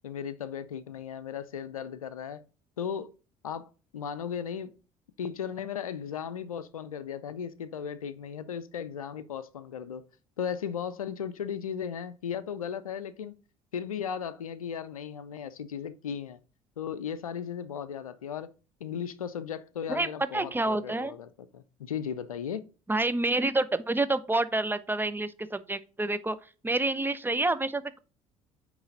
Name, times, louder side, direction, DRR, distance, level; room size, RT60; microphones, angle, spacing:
voice 1, 0.0-2.4 2.8-3.1 3.4-4.7 5.2-10.0 10.4-13.4 13.7-16.4 16.8-18.5 18.8-22.7, left 8 dB, 90° left, 0.4 m, -36 dB
voice 2, 19.9-21.1 22.9-26.4 26.6-28.0, right 2 dB, 10° right, 0.6 m, -28 dB
8.7 x 3.1 x 3.9 m
hypercardioid pair, 55°, 18 cm